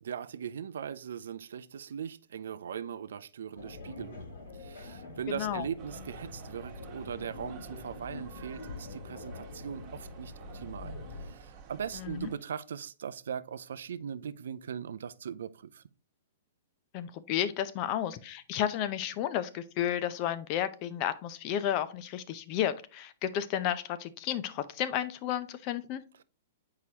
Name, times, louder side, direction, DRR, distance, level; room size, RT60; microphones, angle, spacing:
voice 1, 0.0-15.8, right 8 dB, 75° right, 0.4 m, -40 dB
sound 1, 3.6-11.3, left 3 dB, 75° left, 3.0 m, -45 dB
voice 2, 5.3-5.7 12.0-12.3 16.9-26.0, left 10 dB, 40° left, 0.6 m, -32 dB
sound 2, 5.8-12.4, right 6 dB, 40° right, 1.3 m, -50 dB
8.1 x 4.8 x 2.9 m
hypercardioid pair, 125°, 0 cm